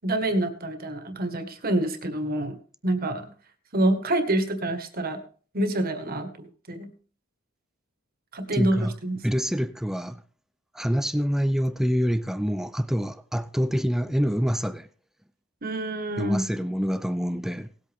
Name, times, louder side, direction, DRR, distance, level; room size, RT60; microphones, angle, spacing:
voice 1, 0.0-2.6 2.8-3.3 3.7-5.2 5.5-6.3 6.7-6.9 8.3-9.2 15.6-16.4, right 1 dB, 50° right, 1.7 m, -26 dB
voice 2, 8.5-8.9 9.2-10.2 10.7-14.9 16.2-17.7, equal, ahead, 0.4 m, -26 dB
18.0 x 8.3 x 3.6 m
head